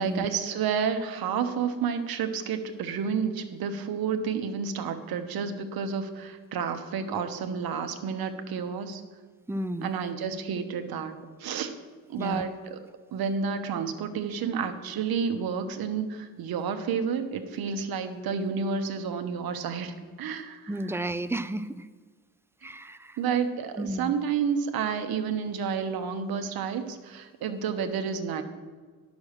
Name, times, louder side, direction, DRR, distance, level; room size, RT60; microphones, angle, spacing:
voice 1, 0.0-9.0 9.8-11.7 12.1-12.8 13.1-21.0 22.6-22.7 23.2-28.4, right 6 dB, 85° right, 7 dB, 1.1 m, -30 dB
voice 2, 9.5-9.9 12.2-12.4 20.7-21.9 22.6-23.2 23.8-24.1, right 1 dB, 5° right, 13 dB, 0.5 m, -33 dB
10.5 x 6.2 x 6.5 m, 1.5 s
cardioid pair, 85°, 36 cm